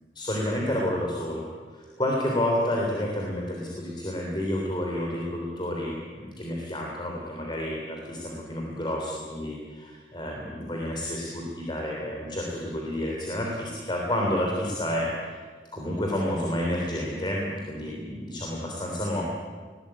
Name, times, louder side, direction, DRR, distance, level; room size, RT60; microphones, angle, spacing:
voice 1, 0.1-1.4 1.7-15.4 15.7-19.2, left 1 dB, 25° left, -1 dB, 3.4 m, -30 dB
21.0 x 17.5 x 8.8 m, 1.5 s
head